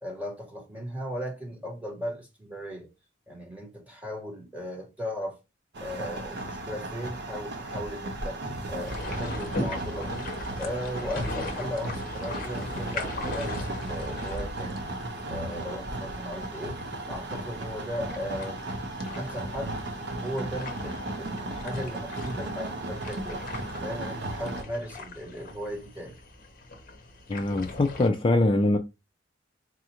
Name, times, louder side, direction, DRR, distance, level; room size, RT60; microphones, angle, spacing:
voice 1, 0.0-2.9 3.3-5.4 5.8-8.4 8.7-10.3 10.6-14.8 15.3-16.8 17.1-18.7 19.2-19.8 20.1-23.4 23.8-26.2, equal, 10° right, 1.2 m, -37 dB
sound 1, 5.7-24.6, right 2 dB, 60° right, 0.7 m, -35 dB
sound 2, 8.8-28.1, left 2 dB, 50° left, 0.8 m, -39 dB
voice 2, 27.3-28.8, left 2 dB, 30° left, 0.3 m, -23 dB
4.1 x 2.4 x 2.8 m
head